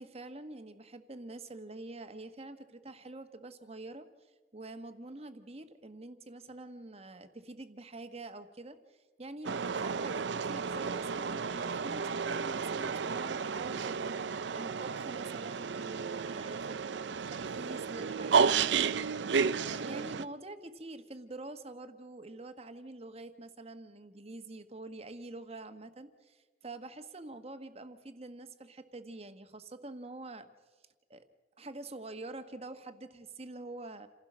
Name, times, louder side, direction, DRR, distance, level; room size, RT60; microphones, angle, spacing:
voice 1, 0.0-30.5 31.1-31.2 31.6-34.1, right 2 dB, 35° right, 8 dB, 1.2 m, -46 dB
sound 1, 9.4-20.2, right 5 dB, 70° right, 0.5 m, -32 dB
28.0 x 16.0 x 6.2 m, 1.4 s
head